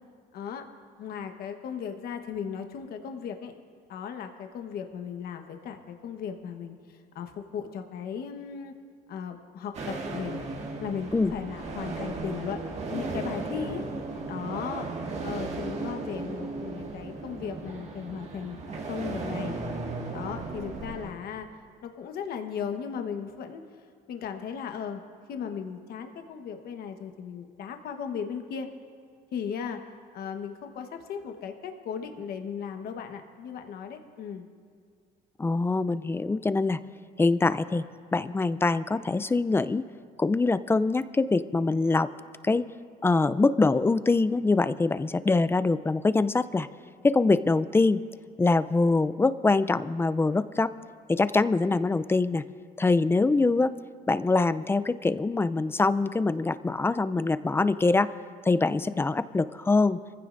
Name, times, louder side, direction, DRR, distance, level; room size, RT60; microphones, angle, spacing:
voice 1, 0.3-0.6 1.0-3.5 3.9-8.7 9.1-10.4 10.8-12.6 12.9-13.8 14.3-14.9 15.2-18.6 18.9-19.6 20.1-21.5 21.8-23.6 24.1-25.0 25.3-28.7 29.3-29.8 30.1-34.5, left 7 dB, 65° left, 5 dB, 1.2 m, -36 dB
sound 1, 9.7-21.1, right 3 dB, 40° right, 1.7 m, -35 dB
voice 2, 35.4-36.8 37.2-37.8 38.1-39.8 40.2-42.1 42.4-42.7 43.0-46.7 47.0-48.0 48.4-50.7 51.1-52.4 52.8-53.7 54.1-58.1 58.5-60.0, left 3 dB, 15° left, 14 dB, 0.4 m, -24 dB
24.5 x 15.5 x 2.6 m, 2.1 s
cardioid pair, 110°, 17 cm